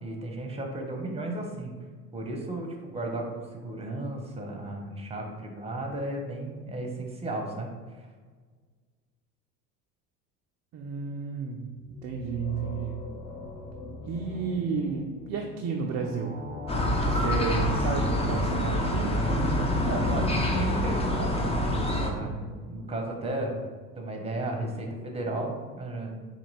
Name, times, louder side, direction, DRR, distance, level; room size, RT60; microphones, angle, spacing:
voice 1, 0.0-1.7 2.1-7.7 7.9-8.0 19.8-23.5 23.9-26.1, right 1 dB, 15° right, 2 dB, 0.8 m, -34 dB
voice 2, 10.7-11.7 12.0-13.0 14.0-16.3 16.9-19.2, right 5 dB, 35° right, 1 dB, 0.5 m, -32 dB
sound 1, 11.7-22.9, left 2 dB, 65° left, 1.3 m, -40 dB
sound 2, 16.7-22.1, left 1 dB, 15° left, 0.6 m, -26 dB
4.2 x 2.8 x 4.1 m, 1.5 s
hypercardioid pair, 70°, 48 cm